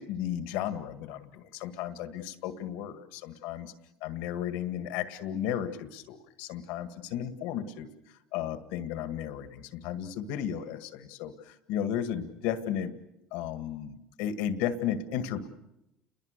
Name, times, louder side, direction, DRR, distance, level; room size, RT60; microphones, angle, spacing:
voice 1, 0.0-3.7 4.0-12.9 13.3-15.5, left 9 dB, 80° left, 10 dB, 1.8 m, -34 dB
29.5 x 22.0 x 6.7 m, 0.89 s
supercardioid pair, 90°, 3 cm